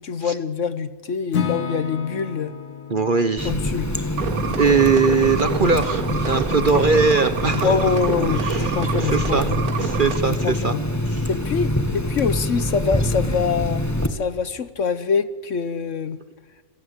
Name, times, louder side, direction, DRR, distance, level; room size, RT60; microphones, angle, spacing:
voice 1, 0.0-2.5 3.4-3.9 6.7-6.8 7.6-9.6 10.3-10.8 11.3-13.8 14.1-16.2, left 5 dB, 55° left, 14 dB, 1.3 m, -24 dB
Acoustic guitar / Strum, 1.3-5.4, left 7 dB, 80° left, 2.1 m, -32 dB
voice 2, 2.9-3.5 4.6-7.9 8.4-9.5 9.8-10.7 11.1-11.2, right 4 dB, 40° right, 12 dB, 1.0 m, -21 dB
Water tap faucet, 3.4-14.1, left 1 dB, 10° left, 1.5 m, -25 dB
sound 1, 4.2-10.2, right 7 dB, 70° right, 1.7 m, -28 dB
26.5 x 18.0 x 8.4 m, 1.4 s
omnidirectional pair, 1.6 m